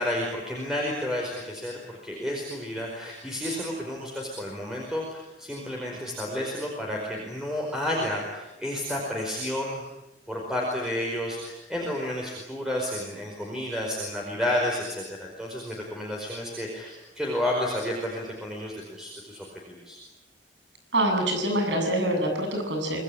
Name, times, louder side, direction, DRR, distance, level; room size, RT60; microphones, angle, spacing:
voice 1, 0.0-9.8 10.3-20.0, left 1 dB, 5° right, -2 dB, 4.9 m, -31 dB
voice 2, 20.9-23.0, right 1 dB, 85° right, 4 dB, 7.9 m, -25 dB
26.5 x 20.0 x 10.0 m, 0.94 s
head